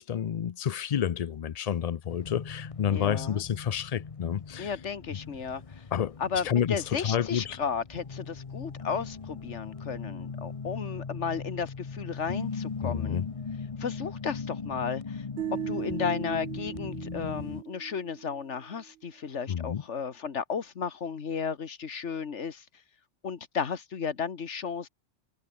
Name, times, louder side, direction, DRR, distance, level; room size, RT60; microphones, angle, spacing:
voice 1, 0.0-4.7 5.1-5.2 5.9-6.2 6.4-7.6 12.8-13.3 19.5-19.8, left 9 dB, 50° left, 0.4 m, -29 dB
sound 1, 2.1-17.6, left 5 dB, 30° left, 0.9 m, -39 dB
voice 2, 2.9-3.4 4.6-5.8 6.2-13.2 13.8-15.3 15.7-22.6 23.2-24.9, left 6 dB, 75° left, 1.8 m, -34 dB
sound 2, 15.4-18.5, right 13 dB, 70° right, 0.8 m, -38 dB
omnidirectional pair, 1.2 m